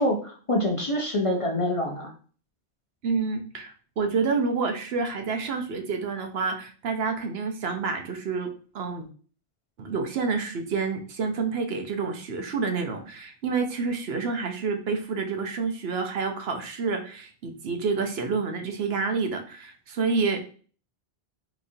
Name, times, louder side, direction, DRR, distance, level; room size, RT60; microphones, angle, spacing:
voice 1, 0.0-2.1, left 1 dB, 40° left, 0 dB, 0.5 m, -26 dB
voice 2, 3.0-9.1 9.8-20.4, right 4 dB, 75° right, 5 dB, 0.9 m, -28 dB
3.9 x 3.0 x 2.6 m, 0.41 s
omnidirectional pair, 1.1 m